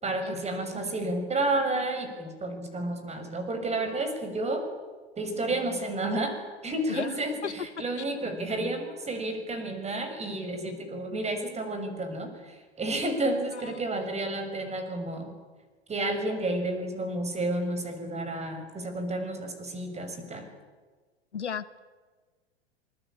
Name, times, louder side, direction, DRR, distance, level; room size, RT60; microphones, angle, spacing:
voice 1, 0.0-4.6 5.2-6.4 6.6-15.3 15.9-20.5, right 2 dB, 20° right, 7 dB, 6.4 m, -31 dB
voice 2, 21.3-21.8, left 7 dB, 85° left, 16 dB, 1.2 m, -34 dB
27.0 x 21.5 x 8.8 m, 1.4 s
hypercardioid pair, 95°, 33 cm